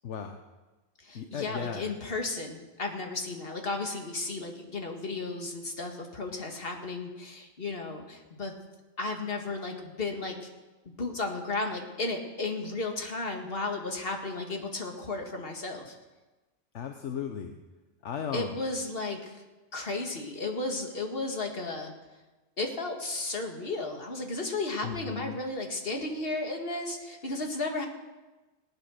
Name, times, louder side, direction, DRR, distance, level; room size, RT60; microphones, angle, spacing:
voice 1, 0.0-0.4 1.1-1.9 16.7-17.6 18.0-18.6 24.8-25.4, left 7 dB, 75° left, 5 dB, 1.2 m, -36 dB
voice 2, 1.0-8.5 9.0-10.5 11.0-16.0 18.3-19.4 19.7-21.9 22.6-27.9, left 3 dB, 50° left, 3 dB, 2.1 m, -34 dB
18.5 x 9.0 x 6.5 m, 1.2 s
omnidirectional pair, 1.2 m